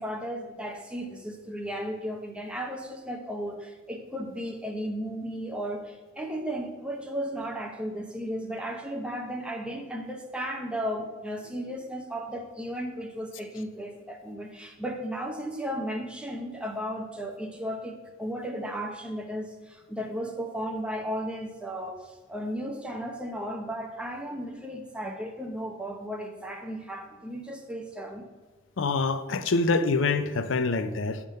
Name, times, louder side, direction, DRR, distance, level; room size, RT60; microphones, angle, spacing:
voice 1, 0.0-28.3, equal, 5° right, 3 dB, 0.8 m, -35 dB
voice 2, 28.8-31.2, left 3 dB, 65° left, 10 dB, 0.5 m, -25 dB
9.1 x 3.6 x 6.4 m, 1.2 s
head